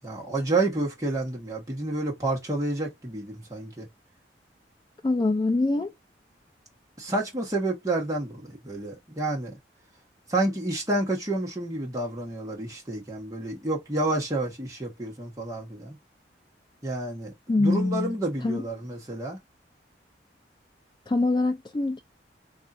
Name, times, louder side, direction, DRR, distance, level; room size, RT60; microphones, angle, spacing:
voice 1, 0.0-3.9 7.0-9.6 10.3-16.0 16.8-19.4, right 2 dB, 20° right, 1.2 m, -29 dB
voice 2, 5.0-5.9 17.5-18.1 18.4-18.6 21.1-22.0, left 2 dB, 25° left, 0.4 m, -24 dB
3.5 x 2.5 x 2.6 m
head